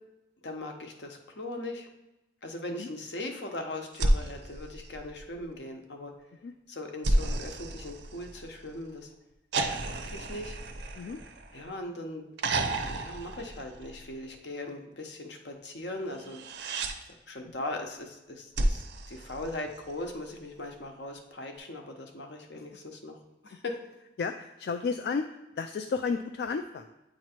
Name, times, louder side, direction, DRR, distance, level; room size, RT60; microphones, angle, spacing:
voice 1, 0.4-1.9 2.4-6.1 6.7-9.1 9.8-10.6 11.5-12.3 12.9-16.4 17.0-23.2 23.4-23.8, left 2 dB, 80° left, 3 dB, 0.9 m, -39 dB
sound 1, 3.9-5.5 7.0-8.7 9.5-11.8 12.4-14.2 16.2-17.0 18.5-20.0 21.6-21.7, right 1 dB, 85° right, 0.6 m, -31 dB
voice 2, 24.2-25.3 25.6-26.9, left 5 dB, 60° left, 7 dB, 0.3 m, -32 dB
8.6 x 3.0 x 4.4 m, 0.99 s
head